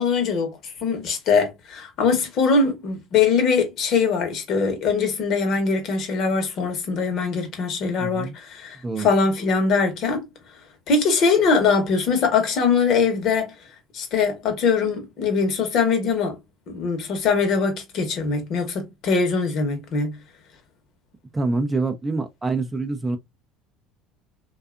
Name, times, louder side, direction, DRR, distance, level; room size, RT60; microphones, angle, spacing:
voice 1, 0.0-10.3 10.9-13.5 13.9-16.4 16.7-20.2, left 5 dB, 55° left, 0.9 m, -22 dB
voice 2, 8.0-8.4 8.8-9.1 21.3-23.2, right 3 dB, 15° right, 0.4 m, -25 dB
2.6 x 2.3 x 2.3 m
cardioid pair, 120°, 0 cm